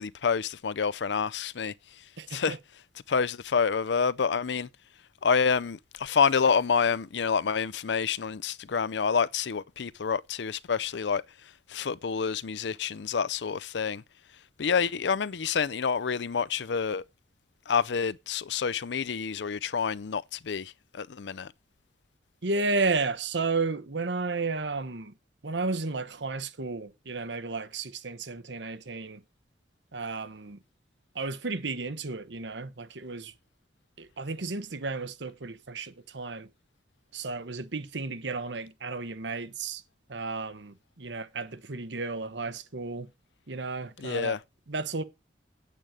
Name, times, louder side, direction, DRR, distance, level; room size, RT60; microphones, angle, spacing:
voice 1, 0.0-1.7 2.3-2.6 3.1-4.7 5.2-11.2 11.7-14.0 14.6-17.0 17.7-21.5 44.0-44.4, left 6 dB, 75° left, 0.5 m, -28 dB
voice 2, 2.2-2.6 22.4-25.1 25.4-29.2 29.9-30.6 31.1-33.3 34.0-36.5 37.1-39.8 40.1-43.1 43.5-44.4 44.7-45.0, right 3 dB, 85° right, 1.1 m, -33 dB
9.0 x 8.6 x 5.0 m
head